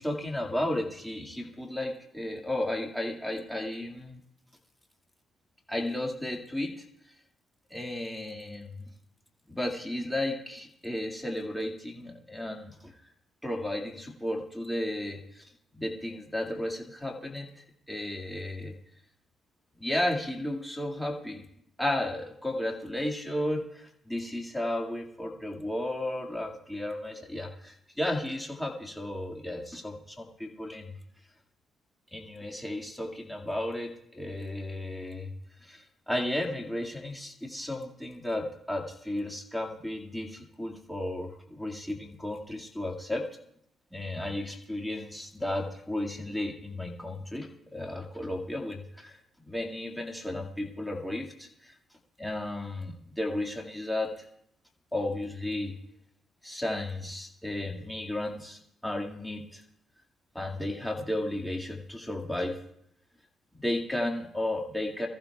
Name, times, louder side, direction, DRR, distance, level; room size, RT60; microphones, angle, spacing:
voice 1, 0.0-4.2 5.7-6.9 7.7-8.9 9.5-12.9 13.4-15.5 15.7-18.7 19.8-21.4 21.8-30.9 32.1-35.3 35.6-43.2 43.9-49.2 49.5-51.7 52.2-54.1 54.9-55.8 56.4-59.6 60.3-62.6 63.6-65.1, left 1 dB, 5° left, 0 dB, 2.1 m, -34 dB
23.0 x 14.5 x 2.4 m, 0.72 s
cardioid pair, 90°, 0 cm